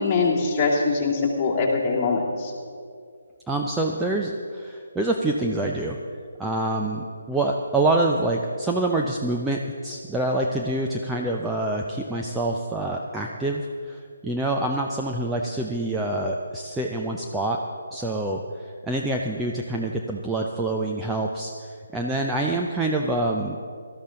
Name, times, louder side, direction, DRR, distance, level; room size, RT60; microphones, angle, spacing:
voice 1, 0.0-2.5, left 4 dB, 20° left, -4 dB, 2.7 m, -23 dB
voice 2, 3.5-6.0 6.4-17.6 17.9-18.4 18.8-21.5 21.9-23.6, right 2 dB, 5° right, -1 dB, 0.6 m, -26 dB
18.5 x 13.0 x 3.8 m, 2.2 s
figure-of-eight pair, 145°, 0 cm